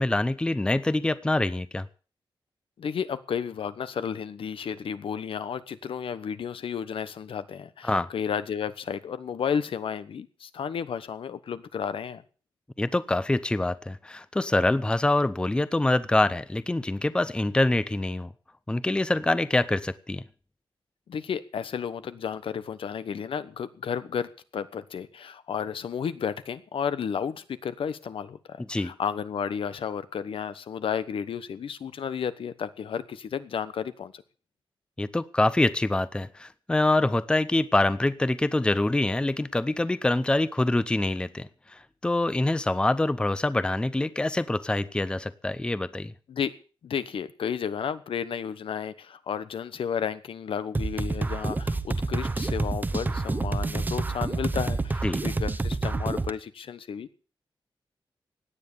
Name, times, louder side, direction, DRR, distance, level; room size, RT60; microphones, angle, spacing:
voice 1, 0.0-1.9 7.8-8.1 12.8-18.3 18.7-20.2 28.6-28.9 35.0-46.1 55.0-55.2, left 2 dB, 10° left, 0.6 m, -25 dB
voice 2, 2.8-12.2 21.1-34.2 46.3-46.5 46.8-57.1, left 7 dB, 80° left, 1.2 m, -32 dB
sound 1, 50.7-56.3, right 3 dB, 20° right, 0.9 m, -28 dB
17.0 x 9.9 x 6.9 m
wide cardioid pair, 170°, 9 cm